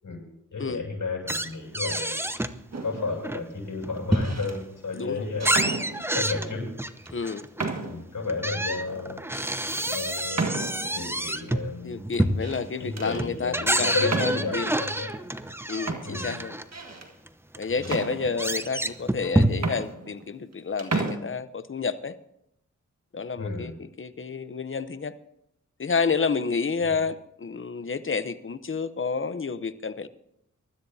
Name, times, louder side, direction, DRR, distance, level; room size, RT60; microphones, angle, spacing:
voice 1, 0.0-2.2 2.8-5.7 6.1-6.7 7.8-9.2 9.9-10.4 10.9-12.0 12.8-15.1 16.0-16.4 17.8-18.0 23.4-23.7 26.8-26.9, left 3 dB, 70° left, -2 dB, 7.1 m, -33 dB
sound 1, 1.3-2.6 3.0-4.7 5.1-7.7 8.3-16.6 17.3-17.4 17.5-19.9, right 1 dB, 5° right, 0.8 m, -28 dB
sound 2, 2.7-3.2 4.0-4.6 5.4-6.4 7.0-7.1 7.6-8.1 8.6-8.7 9.3-9.5 10.3-11.0 12.1-12.6 13.0-13.3 14.1-14.7 15.5-15.6 15.9-17.1 17.8-18.7 19.2-19.3 19.5-20.5 20.8-21.2, right 3 dB, 55° right, 1.8 m, -32 dB
voice 2, 4.9-5.3 7.1-7.5 11.8-14.7 15.7-16.5 17.6-22.1 23.1-25.1 25.8-30.1, left 5 dB, 40° left, 13 dB, 0.8 m, -30 dB
sound 3, 10.3-11.4, right 1 dB, 25° right, 6.0 m, -45 dB
23.5 x 13.0 x 2.8 m, 0.78 s
cardioid pair, 60°, 32 cm